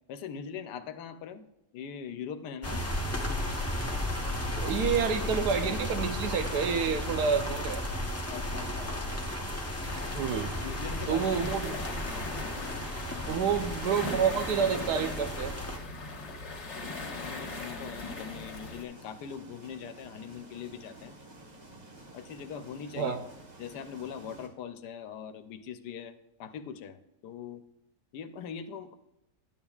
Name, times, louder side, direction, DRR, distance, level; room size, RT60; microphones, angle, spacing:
voice 1, 0.1-1.5 1.7-2.8 8.3-8.9 10.6-11.6 12.1-12.4 13.3-13.4 17.2-21.2 22.1-23.2 23.6-27.6 28.1-29.0, left 7 dB, 80° left, 10 dB, 1.2 m, -41 dB
sound 1, 2.6-15.8, left 1 dB, 15° left, 0.5 m, -34 dB
voice 2, 4.5-7.8 10.1-10.5 11.1-11.8 13.3-15.5 23.0-23.2, right 6 dB, 75° right, 8 dB, 1.3 m, -28 dB
sound 2, 9.8-18.8, left 2 dB, 45° left, 1.5 m, -40 dB
sound 3, 18.0-24.5, right 2 dB, 30° right, 1.1 m, -51 dB
11.0 x 8.8 x 2.3 m, 0.91 s
omnidirectional pair, 1.8 m